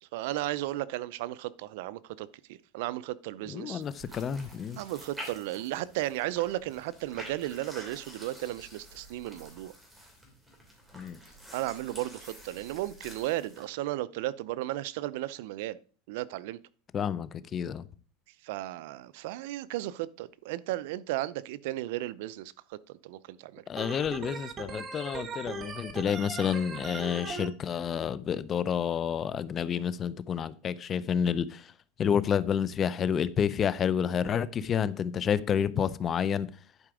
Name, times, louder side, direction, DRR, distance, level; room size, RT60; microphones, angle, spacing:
voice 1, 0.0-3.8 4.8-9.7 11.5-15.8 16.1-16.6 18.4-23.6, right 15 dB, 70° right, 0.5 m, -35 dB
voice 2, 3.5-4.8 10.9-11.2 16.9-17.9 23.7-31.7 32.0-36.5, left 8 dB, 30° left, 0.5 m, -29 dB
sound 1, 3.8-13.7, equal, 5° right, 2.7 m, -48 dB
Organ, 23.8-27.5, right 4 dB, 25° right, 1.3 m, -39 dB
11.0 x 4.9 x 4.9 m
supercardioid pair, 135°, 0 cm